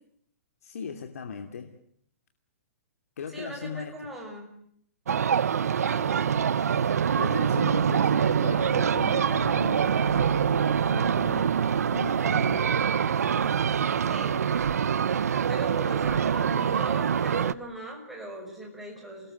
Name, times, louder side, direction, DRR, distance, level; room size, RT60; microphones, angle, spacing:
voice 1, 0.6-1.8 3.2-4.0 7.2-12.7 18.2-18.3, left 5 dB, 75° left, 5 dB, 2.8 m, -38 dB
voice 2, 3.3-4.5 5.9-6.3 14.1-14.5 15.5-19.3, right 1 dB, ahead, -1 dB, 6.0 m, -40 dB
sound 1, 5.1-17.5, right 7 dB, 90° right, 1.0 m, -25 dB
29.5 x 20.0 x 7.9 m, 0.67 s
hypercardioid pair, 165°, 8 cm